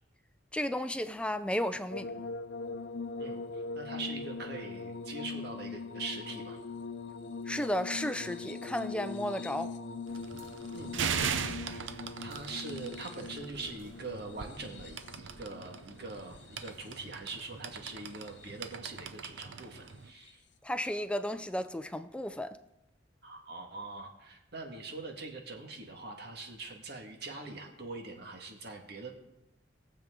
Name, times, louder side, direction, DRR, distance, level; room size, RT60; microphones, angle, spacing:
voice 1, 0.5-2.1 7.5-9.7 20.6-22.6, left 1 dB, 5° left, 0.5 m, -33 dB
sound 1, 1.9-17.1 18.0-18.7 20.1-20.3, left 3 dB, 70° left, 0.7 m, -42 dB
voice 2, 3.2-6.6 10.7-20.4 23.2-29.1, right 3 dB, 60° right, 1.9 m, -43 dB
sound 2, 10.1-20.1, right 6 dB, 90° right, 0.7 m, -40 dB
21.0 x 7.5 x 3.8 m
head